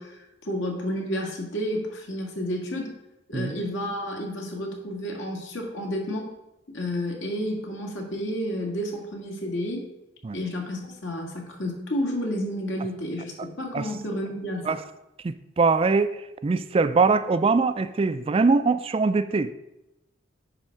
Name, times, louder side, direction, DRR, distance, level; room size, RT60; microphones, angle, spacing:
voice 1, 0.0-2.9 3.3-6.2 6.7-9.9 10.3-14.8, equal, 80° left, 0 dB, 2.0 m, -31 dB
voice 2, 15.2-16.2 16.4-19.5, right 4 dB, 30° right, 12 dB, 0.3 m, -22 dB
9.9 x 3.5 x 6.3 m, 0.90 s
head